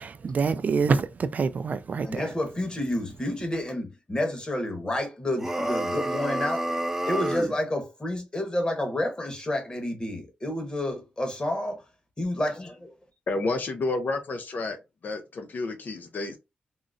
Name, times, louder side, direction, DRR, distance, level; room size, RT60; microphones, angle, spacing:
voice 1, 0.0-2.3, right 5 dB, 50° right, 0.3 m, -26 dB
voice 2, 2.0-6.7 7.1-11.8 12.2-12.9, left 1 dB, 25° left, 1.2 m, -30 dB
sound 1, 5.4-7.6, right 1 dB, 10° right, 0.6 m, -29 dB
voice 3, 13.3-14.8 15.0-16.4, left 3 dB, 60° left, 0.6 m, -30 dB
3.7 x 2.0 x 2.5 m
cardioid pair, 65°, 3 cm